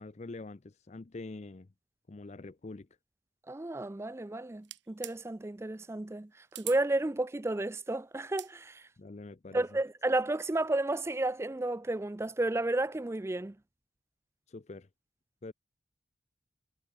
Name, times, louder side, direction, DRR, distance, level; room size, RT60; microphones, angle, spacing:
voice 1, 0.0-1.7 2.1-2.9 9.0-9.6 14.5-14.9 15.4-15.5, left 2 dB, 35° left, 0.5 m, -45 dB
voice 2, 3.5-8.8 9.5-13.5, right 2 dB, 15° right, 0.4 m, -32 dB
sound 1, 4.6-5.2 6.5-6.8 8.2-8.5, right 15 dB, 80° right, 3.1 m, -42 dB
head